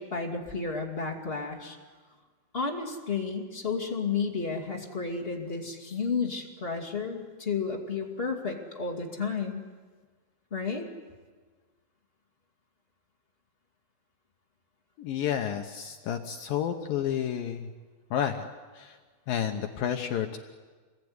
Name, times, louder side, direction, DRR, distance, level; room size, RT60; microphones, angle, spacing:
voice 1, 0.0-1.8 2.5-9.6 10.5-10.9, left 5 dB, 30° left, 1 dB, 1.0 m, -32 dB
voice 2, 15.0-17.7 18.1-18.4 18.7-19.0 19.3-20.4, left 9 dB, 80° left, 5 dB, 2.0 m, -30 dB
27.0 x 21.5 x 9.6 m, 1.4 s
omnidirectional pair, 5.5 m